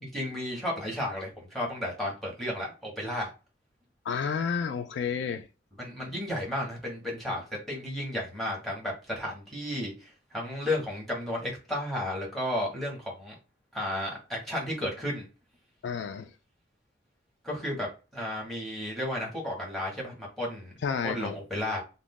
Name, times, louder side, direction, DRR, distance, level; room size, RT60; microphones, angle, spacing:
voice 1, 0.0-3.3 5.8-13.3 13.7-15.3 17.4-20.8 21.0-21.8, left 1 dB, ahead, 1.3 m, -33 dB
voice 2, 4.1-5.5 15.8-16.3 20.8-21.3, left 6 dB, 70° left, 0.3 m, -30 dB
2.6 x 2.4 x 3.7 m
head